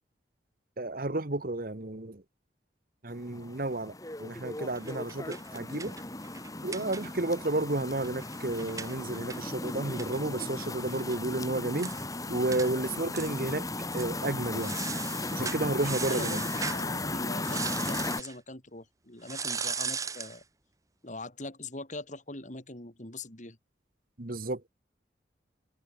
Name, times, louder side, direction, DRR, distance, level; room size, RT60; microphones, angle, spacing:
voice 1, 0.8-2.2 3.0-3.9 4.2-5.9 6.6-12.0 12.3-13.6 13.9-14.8 15.3-16.4 24.2-24.7, right 2 dB, 50° right, 1.4 m, -32 dB
sound 1, 3.1-18.2, left 2 dB, 20° left, 2.4 m, -36 dB
sound 2, 4.8-7.4 7.7-7.8 8.0-11.2 11.5-11.6 11.8-12.0 12.5-12.7 13.1-13.5 13.9-14.1 14.6-16.9 17.4-18.4 19.2-20.4, right 5 dB, 20° right, 1.0 m, -38 dB
voice 2, 16.1-20.4 21.0-23.6, left 2 dB, 45° left, 3.6 m, -42 dB
head